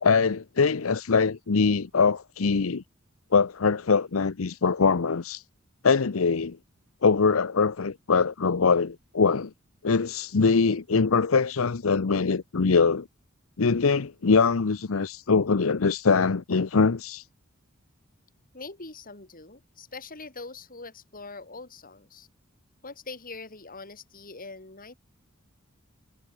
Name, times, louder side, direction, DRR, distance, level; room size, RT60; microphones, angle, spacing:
voice 1, 0.0-2.8 3.3-5.4 5.8-6.6 7.0-9.5 9.8-13.1 13.6-17.3, left 5 dB, 70° left, 0.7 m, -23 dB
voice 2, 18.5-22.3 22.8-24.9, left 3 dB, 45° left, 6.1 m, -43 dB
head